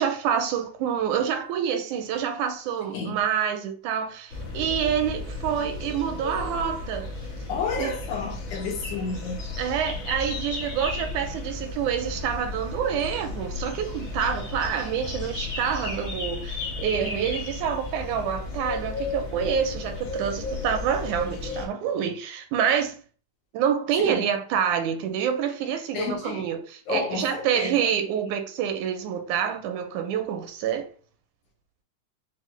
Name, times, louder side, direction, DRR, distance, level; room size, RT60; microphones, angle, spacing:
voice 1, 0.0-7.1 7.8-7.9 9.6-23.0 23.5-30.9, right 8 dB, 85° right, 2.0 m, -27 dB
sound 1, 4.3-21.7, left 3 dB, 50° left, 1.7 m, -34 dB
voice 2, 7.5-9.4 24.0-24.2 25.9-26.5 26.9-27.9, left 4 dB, 80° left, 2.6 m, -31 dB
5.6 x 2.1 x 3.1 m
omnidirectional pair, 3.5 m